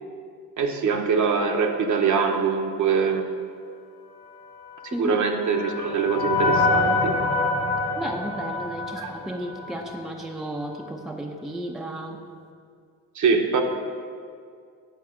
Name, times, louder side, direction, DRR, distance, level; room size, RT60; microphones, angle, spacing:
voice 1, 0.6-3.2 4.8-7.1 9.0-9.1 13.1-13.6, right 5 dB, 50° right, 4 dB, 1.0 m, -23 dB
sound 1, 4.7-10.0, left 3 dB, 75° left, 1.1 m, -26 dB
voice 2, 8.0-12.3, right 1 dB, ahead, 2 dB, 0.6 m, -33 dB
9.0 x 4.1 x 6.2 m, 2.2 s
supercardioid pair, 75°, 39 cm